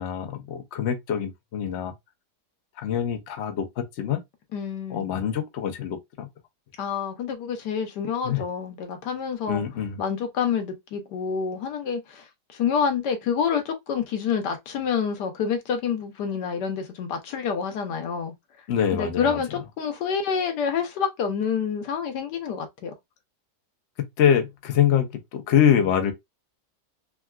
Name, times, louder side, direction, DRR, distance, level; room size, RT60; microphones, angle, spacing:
voice 1, 0.0-1.9 2.8-4.2 4.9-6.3 8.2-8.4 9.5-10.0 18.7-19.4 24.2-26.1, left 9 dB, 60° left, 0.7 m, -24 dB
voice 2, 4.5-5.1 6.8-9.6 10.0-12.3 12.5-18.3 18.9-22.9, left 6 dB, 80° left, 1.4 m, -27 dB
3.6 x 2.3 x 2.2 m
omnidirectional pair, 1.8 m